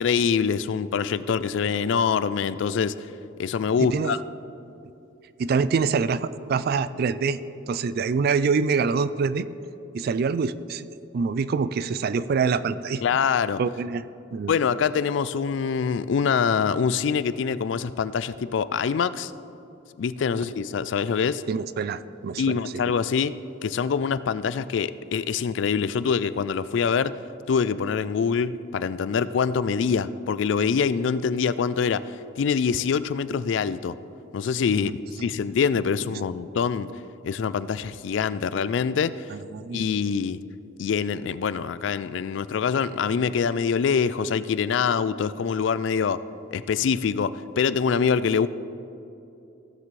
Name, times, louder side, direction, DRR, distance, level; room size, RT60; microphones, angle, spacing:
voice 1, 0.0-2.9 3.4-4.2 13.0-13.6 14.5-19.3 20.0-21.4 22.4-23.3 23.6-27.2 27.5-33.9 34.3-34.9 35.2-36.9 37.2-39.1 39.7-40.4 40.8-46.2 46.5-48.5, left 6 dB, 65° left, 15 dB, 0.3 m, -24 dB
voice 2, 3.8-4.2 5.4-7.4 7.7-9.5 9.9-10.9 11.1-13.0 13.6-14.0 14.3-14.6 21.5-22.6 34.8-34.9 35.2-35.3 39.3-39.9, right 5 dB, 50° right, 15 dB, 0.3 m, -25 dB
16.5 x 7.4 x 3.2 m, 2.7 s
head